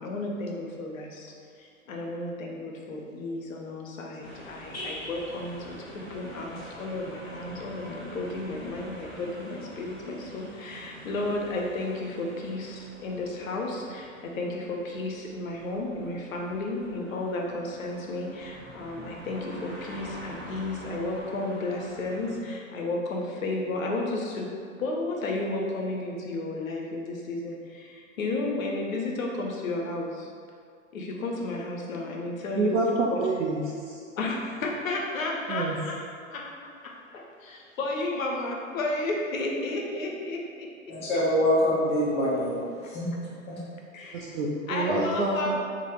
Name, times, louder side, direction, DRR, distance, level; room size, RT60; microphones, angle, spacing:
voice 1, 0.0-1.3 1.6-24.5 24.8-30.3 30.9-32.8 33.1-33.2 34.2-40.7 43.9-44.3 44.7-45.6, left 2 dB, 75° left, 0 dB, 0.6 m, -33 dB
sound 1, 4.2-22.4, equal, 30° left, 1.3 m, -45 dB
voice 2, 32.5-33.6 33.9-34.0 35.5-35.8 44.1-45.5, right 3 dB, 60° right, -4 dB, 0.5 m, -27 dB
voice 3, 40.9-43.6, equal, 15° left, -7 dB, 0.5 m, -26 dB
3.0 x 2.1 x 2.9 m, 2.1 s
figure-of-eight pair, 105°, 41 cm